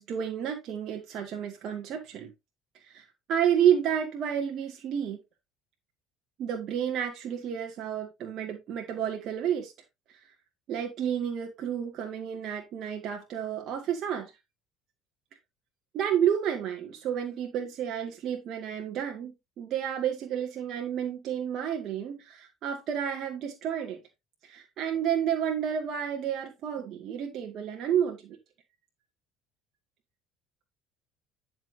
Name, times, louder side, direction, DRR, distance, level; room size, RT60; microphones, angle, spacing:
voice 1, 0.0-2.3 2.9-5.2 6.4-9.7 10.7-14.3 15.9-24.0 24.5-28.4, right 9 dB, 55° right, 2.1 m, -30 dB
10.5 x 5.9 x 2.8 m
hypercardioid pair, 70°, 0 cm